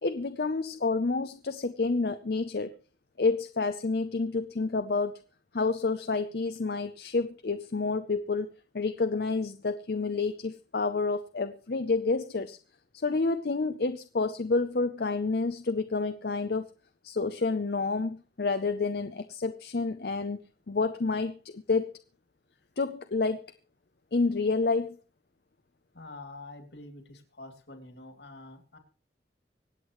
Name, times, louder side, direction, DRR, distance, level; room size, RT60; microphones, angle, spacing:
voice 1, 0.0-2.7 3.2-5.2 5.5-12.6 12.9-16.7 17.0-20.4 20.7-21.9 22.8-23.5 24.1-25.0, left 3 dB, 60° left, 9 dB, 0.6 m, -29 dB
voice 2, 25.9-28.8, left 2 dB, 80° left, 6 dB, 2.8 m, -46 dB
25.0 x 8.4 x 3.1 m, 0.37 s
head